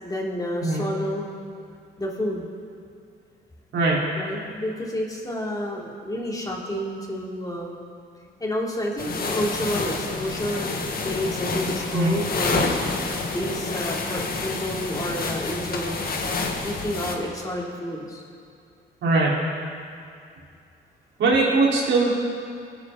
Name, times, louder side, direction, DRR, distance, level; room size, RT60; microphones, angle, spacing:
voice 1, 0.0-1.3 2.0-2.5 4.2-7.8 8.4-10.8 11.0-12.7 13.3-16.0 16.6-18.2, equal, 20° left, -3 dB, 3.3 m, -30 dB
voice 2, 3.7-4.0 11.9-12.1 19.0-19.3 21.2-22.1, right 3 dB, 70° right, -5 dB, 4.5 m, -20 dB
sound 1, 9.0-17.2, left 3 dB, 50° left, 1.8 m, -28 dB
24.5 x 9.7 x 4.2 m, 2.4 s
cardioid pair, 90°, 20 cm